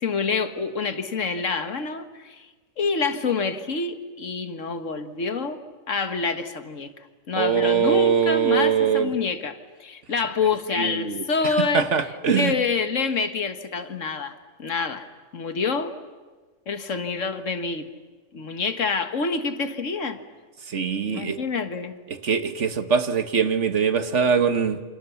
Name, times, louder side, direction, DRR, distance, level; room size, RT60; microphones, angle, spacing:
voice 1, 0.0-2.5 2.8-5.6 5.9-6.9 7.3-14.3 14.6-15.1 15.3-15.9 16.7-17.9 18.3-20.2 21.1-21.9, left 4 dB, 70° left, 9 dB, 1.8 m, -27 dB
voice 2, 7.4-9.1 10.7-12.5 20.7-21.4 22.2-24.8, right 7 dB, 60° right, 9 dB, 1.6 m, -22 dB
28.0 x 27.5 x 7.1 m, 1.4 s
omnidirectional pair, 1.4 m